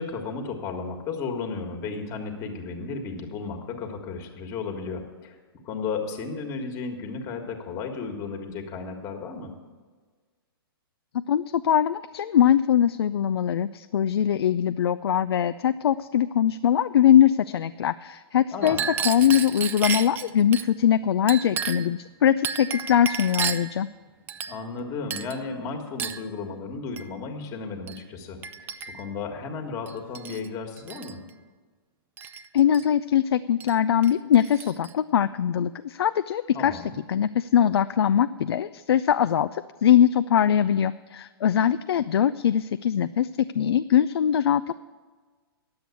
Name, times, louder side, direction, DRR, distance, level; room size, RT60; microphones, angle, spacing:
voice 1, 0.0-5.3 5.6-9.5 18.5-18.9 24.5-28.7 28.9-31.2 36.5-36.9, left 4 dB, 25° left, 4 dB, 1.6 m, -34 dB
voice 2, 11.1-18.8 19.0-23.9 32.5-36.8 37.1-43.3 43.5-44.7, left 9 dB, 80° left, 12 dB, 0.4 m, -22 dB
Chink clink, 18.6-20.7 21.3-22.0 22.4-23.8 24.3-24.8 25.1-25.4 26.0-26.3 27.0-27.1 27.9-28.0 28.4-29.1 29.9-30.5 30.8-31.1 32.2-32.8 33.6-33.7 34.0-34.9, right 7 dB, 15° right, 0.4 m, -32 dB
10.5 x 7.8 x 8.3 m, 1.4 s
hypercardioid pair, 140°, 13 cm